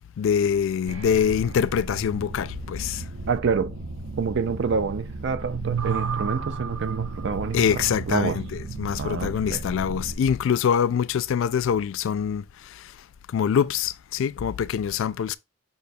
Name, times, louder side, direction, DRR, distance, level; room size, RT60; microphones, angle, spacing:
voice 1, 0.2-3.0 7.5-12.4 13.3-15.4, left 7 dB, 70° left, 0.3 m, -24 dB
sound 1, 0.9-10.2, right 4 dB, 85° right, 0.9 m, -33 dB
voice 2, 3.3-3.7 4.2-8.4 9.0-9.6, right 5 dB, 60° right, 0.5 m, -27 dB
5.5 x 2.3 x 4.1 m
head